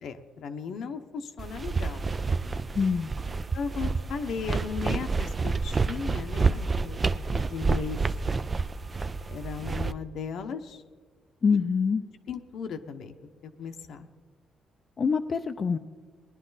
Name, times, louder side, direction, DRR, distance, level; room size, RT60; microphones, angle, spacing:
voice 1, 0.0-2.0 3.5-8.0 9.3-10.8 11.5-11.6 12.3-13.1 13.4-14.1, left 6 dB, 70° left, 7 dB, 0.9 m, -36 dB
sound 1, 1.4-9.9, right 4 dB, 30° right, 0.4 m, -29 dB
voice 2, 2.8-3.1 11.4-12.0 15.0-15.8, left 5 dB, 40° left, 6 dB, 0.5 m, -25 dB
19.0 x 11.0 x 4.0 m, 1.4 s
cardioid pair, 90°, 0 cm